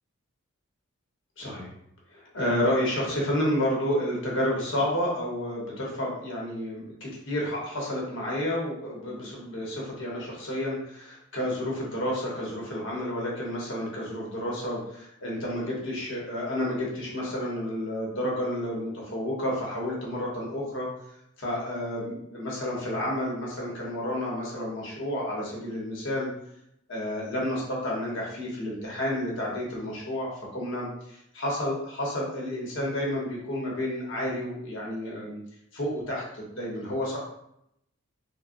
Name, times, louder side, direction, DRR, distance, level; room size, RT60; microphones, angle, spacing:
voice 1, 1.4-1.7 2.1-20.9 21.4-26.3 26.9-35.4 35.7-37.2, left 1 dB, 60° left, -4 dB, 1.0 m, -30 dB
3.7 x 2.1 x 2.5 m, 0.77 s
head